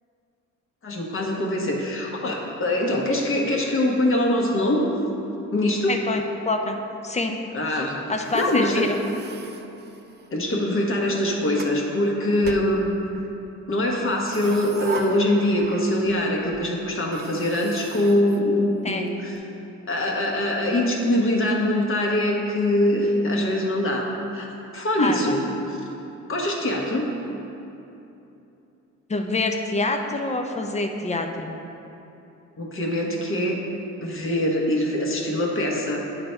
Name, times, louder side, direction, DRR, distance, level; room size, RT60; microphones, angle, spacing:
voice 1, 0.8-4.8 5.5-6.0 7.5-8.0 8.3-8.9 10.3-12.9 13.7-19.4 19.9-24.1 24.3-25.4 25.7-25.8 26.3-27.1 32.6-33.6 34.0-36.0, left 1 dB, 45° left, -1 dB, 1.3 m, -23 dB
voice 2, 5.9-6.8 7.0-7.3 8.1-9.0 18.8-19.0 25.0-25.3 29.1-31.6, left 2 dB, 20° left, 4 dB, 0.6 m, -26 dB
sound 1, 8.1-10.4 11.1-11.8 12.4-13.3 14.1-16.2 16.5-16.6 17.0-19.1, right 5 dB, 35° right, 0.5 m, -39 dB
9.4 x 4.0 x 4.4 m, 2.9 s
cardioid pair, 90°, 30 cm